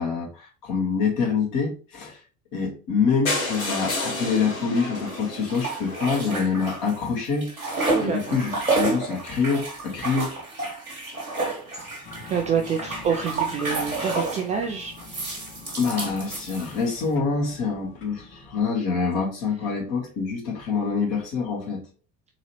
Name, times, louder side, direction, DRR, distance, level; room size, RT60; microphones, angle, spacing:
voice 1, 0.0-2.2 2.5-10.3 15.8-21.8, left 5 dB, 50° left, -2 dB, 1.9 m, -26 dB
sound 1, 3.3-7.1 7.8-7.9 8.1-8.2 8.5-8.6 8.8-8.9, left 2 dB, 75° left, 1.6 m, -31 dB
sound 2, 5.1-7.0 7.3-14.5 15.0-17.0, right 3 dB, 85° right, 1.1 m, -30 dB
voice 2, 7.9-8.5 11.7-15.0 19.6-19.7, right 6 dB, 20° right, 2 dB, 0.3 m, -28 dB
sound 3, 12.0-18.6, left 4 dB, 30° left, 1.8 m, -45 dB
3.8 x 2.9 x 3.1 m, 0.35 s
figure-of-eight pair, 65°, 41 cm